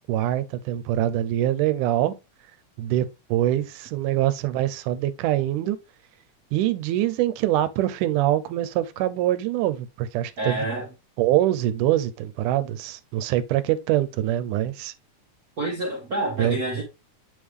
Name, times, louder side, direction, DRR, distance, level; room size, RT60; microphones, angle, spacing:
voice 1, 0.1-2.1 2.8-5.8 6.5-10.6 11.2-14.9 16.4-16.6, right 13 dB, 90° right, 2.2 m, -24 dB
voice 2, 10.4-10.9 15.6-16.8, right 2 dB, 50° right, 1.1 m, -28 dB
9.1 x 3.6 x 3.2 m
omnidirectional pair, 3.6 m